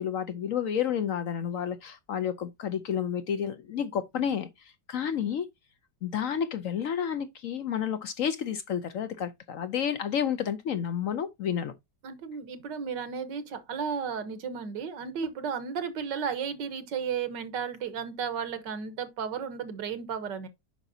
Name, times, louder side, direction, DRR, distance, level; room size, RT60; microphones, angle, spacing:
voice 1, 0.0-5.5 6.0-11.7, left 8 dB, 65° left, 0.9 m, -30 dB
voice 2, 12.0-20.5, right 6 dB, 80° right, 1.7 m, -34 dB
9.0 x 5.8 x 2.7 m
omnidirectional pair, 1.9 m